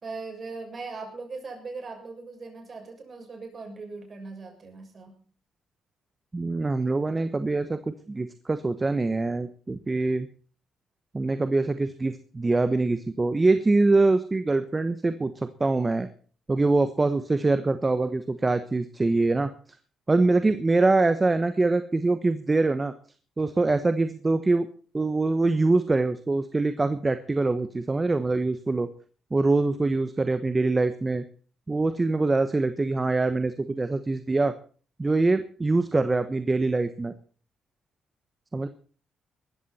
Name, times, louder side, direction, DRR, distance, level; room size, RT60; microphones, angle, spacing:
voice 1, 0.0-5.1, right 4 dB, 40° right, 3 dB, 6.7 m, -39 dB
voice 2, 6.3-10.3 11.1-16.1 16.5-19.5 20.1-22.9 23.4-24.7 24.9-28.9 29.3-31.2 31.7-34.5 35.0-37.1 38.5-38.7, right 3 dB, 20° right, 10 dB, 1.1 m, -24 dB
19.5 x 14.0 x 4.3 m, 0.42 s
cardioid pair, 90°, 0 cm